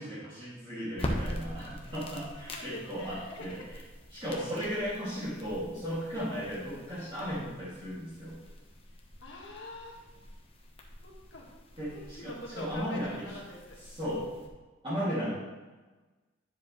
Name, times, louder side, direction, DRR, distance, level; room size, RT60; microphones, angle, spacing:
voice 1, 0.0-3.8 4.1-8.4 11.8-13.4 13.8-14.4 14.8-15.4, equal, 25° right, -10 dB, 2.3 m, -36 dB
sound 1, 0.9-14.5, left 1 dB, 30° left, 1.0 m, -43 dB
voice 2, 2.3-3.7 4.4-4.9 9.2-10.0 11.0-11.4 11.9-13.8, left 2 dB, 60° left, -1 dB, 1.7 m, -45 dB
10.5 x 7.4 x 3.1 m, 1.3 s
head